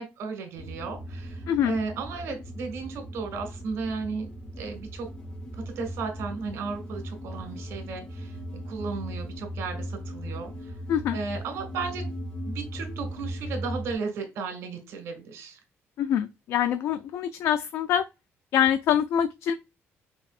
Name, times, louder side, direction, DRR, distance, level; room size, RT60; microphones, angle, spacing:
voice 1, 0.0-4.3 4.6-5.1 5.6-10.7 11.1-12.0 12.4-15.6, right 4 dB, 70° right, 1.7 m, -35 dB
sound 1, 0.6-13.9, equal, 15° left, 0.9 m, -38 dB
voice 2, 16.0-18.0 18.5-19.5, left 9 dB, 65° left, 0.3 m, -25 dB
5.3 x 2.7 x 2.4 m
cardioid pair, 170°, 5 cm